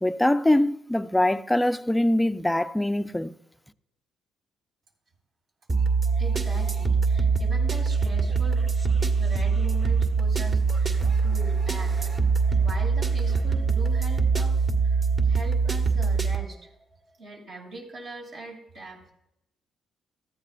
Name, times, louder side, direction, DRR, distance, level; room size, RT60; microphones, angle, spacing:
voice 1, 0.0-3.3, left 1 dB, 5° left, 0.5 m, -23 dB
sound 1, 5.7-16.4, right 5 dB, 35° right, 1.5 m, -23 dB
voice 2, 6.2-8.7 9.2-11.9 12.6-14.5 14.8-16.7 17.2-19.1, right 2 dB, 65° right, 6.1 m, -41 dB
18.5 x 14.5 x 2.5 m
cardioid pair, 90°, 0 cm